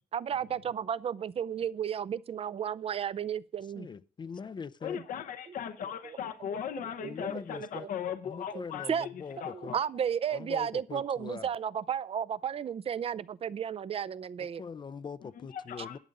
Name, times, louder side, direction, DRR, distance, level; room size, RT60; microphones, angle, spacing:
voice 1, 0.1-3.9 7.0-7.1 7.6-7.9 8.5-8.6 8.9-9.1 9.7-14.6, right 8 dB, 45° right, 0.5 m, -33 dB
voice 2, 3.7-5.0 7.0-7.9 8.2-9.8 10.3-11.5 14.4-16.0, left 5 dB, 35° left, 0.5 m, -42 dB
voice 3, 4.8-9.8 15.5-16.0, left 8 dB, 75° left, 0.8 m, -38 dB
11.0 x 8.2 x 5.3 m
cardioid pair, 100°, 14 cm